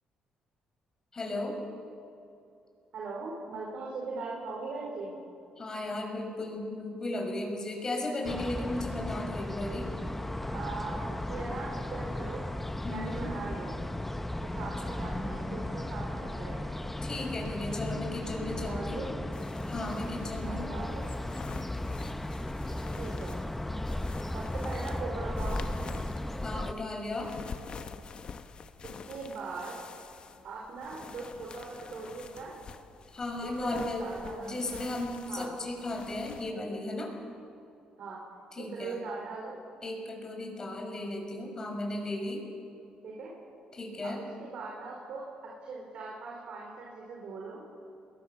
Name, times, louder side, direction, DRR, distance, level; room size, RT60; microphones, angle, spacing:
voice 1, 1.1-1.6 5.6-9.9 12.8-13.3 15.1-15.3 17.0-19.0 19.7-20.7 26.4-27.3 33.1-34.1 34.4-37.1 38.5-39.0 39.8-42.5 43.7-44.2, left 2 dB, 30° left, 1 dB, 6.1 m, -35 dB
voice 2, 2.9-5.2 10.5-12.4 12.9-13.9 14.5-16.7 18.6-19.2 20.4-21.1 23.0-23.3 24.3-25.7 28.8-29.8 30.4-32.6 33.4-35.5 38.0-38.2 38.6-39.5 43.0-43.3 44.0-47.6, right 3 dB, 65° right, -3 dB, 4.7 m, -40 dB
sound 1, 8.2-26.7, left 1 dB, 10° left, 0.8 m, -35 dB
sound 2, 19.3-36.5, left 6 dB, 45° left, 1.2 m, -47 dB
29.0 x 21.0 x 7.1 m, 2.7 s
cardioid pair, 120°, 2 cm